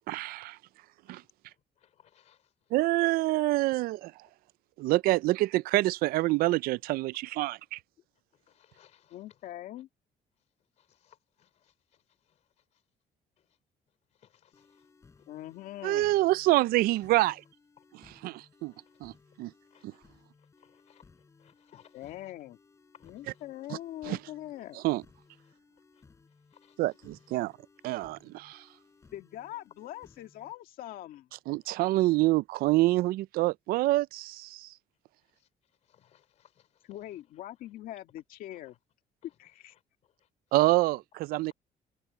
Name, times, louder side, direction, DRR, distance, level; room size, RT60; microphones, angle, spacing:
voice 1, 0.1-0.6 1.1-1.2 2.7-4.1 4.8-7.8 15.8-17.4 17.9-18.7 19.0-19.1 19.4-19.5 19.8-19.9 23.7-23.8 24.0-24.2 24.7-25.0 26.8-27.5 27.8-28.7 31.5-34.7 40.5-41.5, right 18 dB, 80° right, 0.4 m, -27 dB
voice 2, 1.8-2.5 8.5-9.2 10.8-12.0 14.2-14.9 15.2-15.3 18.7-18.8 19.7-20.1 20.6-21.0 21.4-22.1 22.9-23.4 25.5-25.6 25.9-26.0 26.5-26.7 35.8-36.9, left 10 dB, 50° left, 3.4 m, -63 dB
voice 3, 9.1-9.9 15.3-16.1 21.9-22.6 23.0-24.8 29.1-31.3 36.8-38.7 39.4-39.7, left 13 dB, 75° left, 2.2 m, -42 dB
sound 1, 14.5-30.5, left 4 dB, 20° left, 5.4 m, -61 dB
cardioid pair, 180°, 15 cm